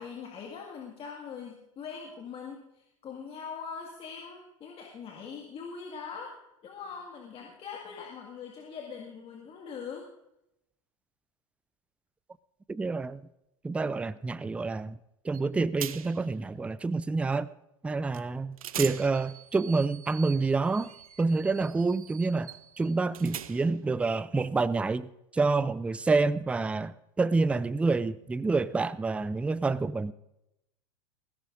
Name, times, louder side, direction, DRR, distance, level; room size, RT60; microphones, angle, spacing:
voice 1, 0.0-6.3 6.6-10.1, left 6 dB, 30° left, 2.0 m, -42 dB
voice 2, 12.7-13.2 13.6-15.0 15.2-17.5 17.8-20.9 21.2-25.1 25.3-30.1, right 3 dB, 5° right, 0.4 m, -28 dB
sound 1, 15.3-15.5 15.8-16.3 18.1-18.3 18.6-23.9, right 10 dB, 80° right, 0.6 m, -42 dB
20.0 x 16.5 x 2.6 m
hypercardioid pair, 90°, 18 cm